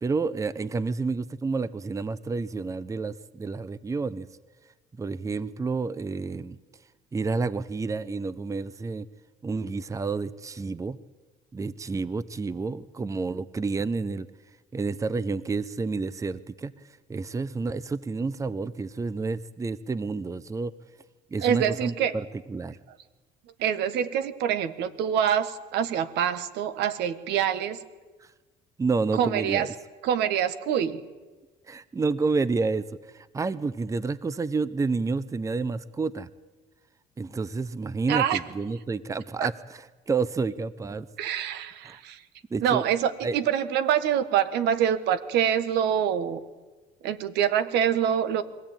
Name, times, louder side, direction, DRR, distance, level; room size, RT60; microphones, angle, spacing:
voice 1, 0.0-4.3 5.0-6.6 7.1-9.1 9.4-11.0 11.5-14.3 14.7-16.7 17.1-20.7 21.3-22.7 28.8-29.7 31.7-36.3 37.2-39.5 40.1-41.1 41.8-42.0 42.5-42.9 43.2-43.4, right 4 dB, 20° right, 17 dB, 0.7 m, -29 dB
voice 2, 21.4-22.1 23.6-27.8 29.1-29.7 30.0-31.0 38.1-38.4 39.4-39.5 41.2-42.2 42.6-46.4 47.0-48.4, right 9 dB, 85° right, 13 dB, 1.4 m, -25 dB
22.5 x 15.5 x 9.0 m, 1.2 s
cardioid pair, 110°, 17 cm